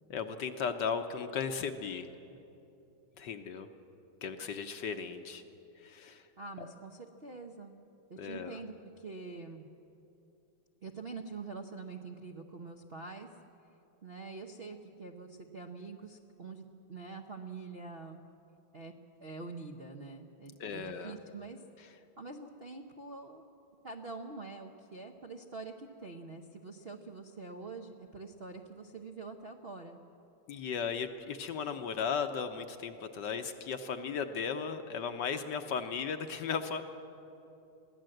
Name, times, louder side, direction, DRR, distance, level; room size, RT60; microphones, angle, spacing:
voice 1, 0.1-2.1 3.2-3.7 4.2-5.4 5.8-6.3 6.6-6.7 8.2-8.6 20.6-21.1 30.5-36.8, left 6 dB, 65° left, 8 dB, 1.3 m, -36 dB
voice 2, 6.4-7.8 8.1-9.7 10.8-13.3 14.0-18.2 18.7-18.9 19.2-21.6 22.2-23.4 23.8-30.0, right 3 dB, 50° right, 3 dB, 0.7 m, -45 dB
22.5 x 16.0 x 7.8 m, 2.8 s
omnidirectional pair, 2.4 m